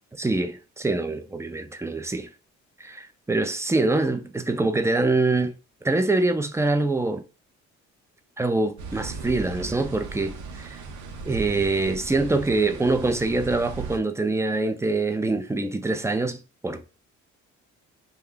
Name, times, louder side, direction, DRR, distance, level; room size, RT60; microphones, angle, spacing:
voice 1, 0.2-2.3 2.8-5.5 5.8-7.2 8.4-10.8 11.3-16.9, right 2 dB, 10° right, 0.4 m, -24 dB
sound 1, 8.8-14.0, right 4 dB, 75° right, 0.6 m, -37 dB
2.4 x 2.2 x 3.6 m
cardioid pair, 90°, 30 cm